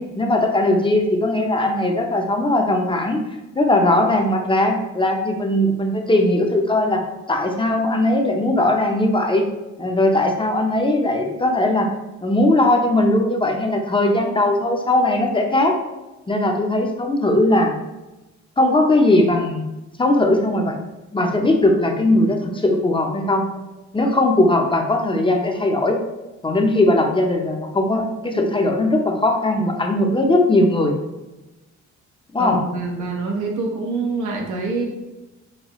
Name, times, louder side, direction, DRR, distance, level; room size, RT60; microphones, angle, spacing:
voice 1, 0.2-3.2 3.5-7.0 7.3-9.5 9.8-11.9 12.2-15.8 16.3-17.7 18.6-19.6 20.0-20.9 21.1-23.5 23.9-26.0 26.4-30.9 32.3-32.6, left 1 dB, 15° left, 2 dB, 0.5 m, -19 dB
voice 2, 32.4-34.8, right 3 dB, 85° right, 0 dB, 0.9 m, -25 dB
5.5 x 2.2 x 3.0 m, 1.1 s
cardioid pair, 90°, 30 cm